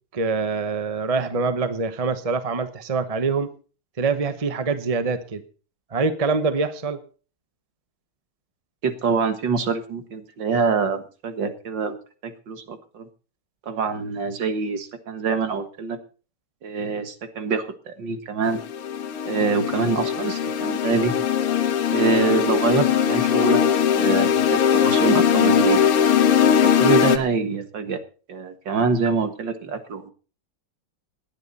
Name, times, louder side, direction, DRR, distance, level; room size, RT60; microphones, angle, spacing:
voice 1, 0.1-3.5 4.0-5.4 5.9-7.0, right 4 dB, 35° right, 10 dB, 0.6 m, -24 dB
voice 2, 8.8-12.0 12.2-13.1 13.6-16.0 16.6-18.6 19.3-21.1 21.9-23.6 23.9-25.8 26.6-28.0 28.3-30.1, right 4 dB, 60° right, 8 dB, 2.1 m, -25 dB
sound 1, 18.5-27.2, left 8 dB, 90° left, 2.0 m, -20 dB
18.5 x 10.5 x 4.1 m, 0.38 s
omnidirectional pair, 2.4 m